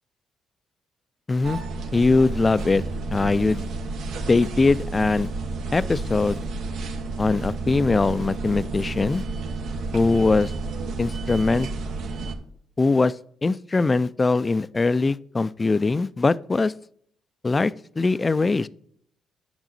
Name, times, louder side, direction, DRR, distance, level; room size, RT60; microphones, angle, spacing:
voice 1, 1.3-1.6 1.9-3.7 4.3-5.3 5.7-6.4 7.2-9.2 9.9-10.5 11.0-11.7 12.8-13.1 13.4-16.7 17.4-18.7, left 3 dB, 25° left, 0.4 m, -21 dB
sound 1, 1.4-12.3, right 3 dB, 80° right, 1.1 m, -31 dB
9.1 x 6.2 x 4.0 m
cardioid pair, 90°, 0 cm